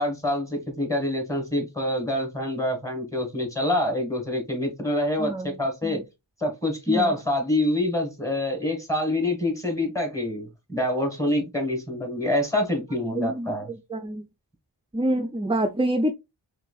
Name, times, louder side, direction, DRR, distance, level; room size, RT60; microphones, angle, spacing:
voice 1, 0.0-6.0 6.4-13.7, left 1 dB, 5° left, 1.7 m, -26 dB
voice 2, 5.2-6.0 6.9-7.2 13.1-14.2 14.9-16.1, right 1 dB, 15° right, 0.4 m, -27 dB
4.7 x 3.2 x 2.3 m
wide cardioid pair, 65°, 45 cm